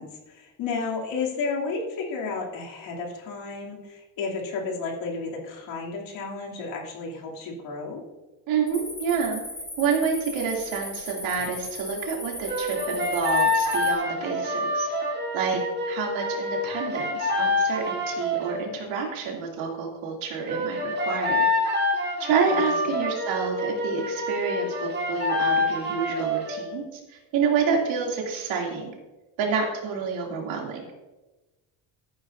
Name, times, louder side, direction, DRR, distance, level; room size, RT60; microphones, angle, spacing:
voice 1, 0.0-8.0 22.5-23.0, left 4 dB, 70° left, -2 dB, 2.9 m, -32 dB
voice 2, 8.5-9.4 9.8-14.9 15.3-15.6 15.9-21.5 22.2-28.9 29.4-30.8, right 5 dB, 75° right, -1 dB, 2.8 m, -28 dB
sound 1, 8.7-13.9, left 1 dB, 10° left, 2.9 m, -38 dB
sound 2, 12.5-18.7 20.5-26.7, left 1 dB, 20° right, 1.7 m, -27 dB
14.0 x 9.5 x 2.6 m, 1.1 s
cardioid pair, 180°, 46 cm